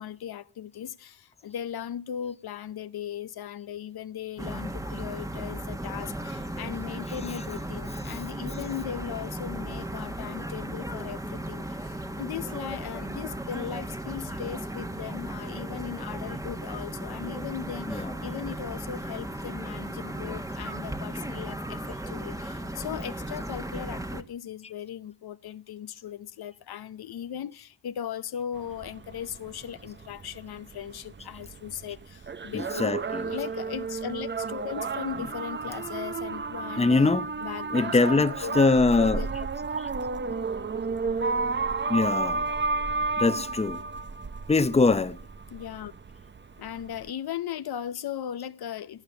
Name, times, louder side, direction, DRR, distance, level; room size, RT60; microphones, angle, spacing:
voice 1, 0.0-33.0 33.2-38.6 39.0-39.3 45.5-45.9 46.6-49.0, left 9 dB, 65° left, 0.8 m, -38 dB
sound 1, 4.4-24.2, right 1 dB, 10° right, 1.4 m, -36 dB
voice 2, 17.9-18.2 32.5-33.2 36.8-37.3 37.7-39.2 41.9-42.4 43.2-43.8 44.5-45.2, left 3 dB, 15° left, 0.8 m, -23 dB
sound 2, 28.6-47.1, right 4 dB, 30° right, 0.8 m, -32 dB
18.0 x 8.9 x 7.1 m
cardioid pair, 70°, 40 cm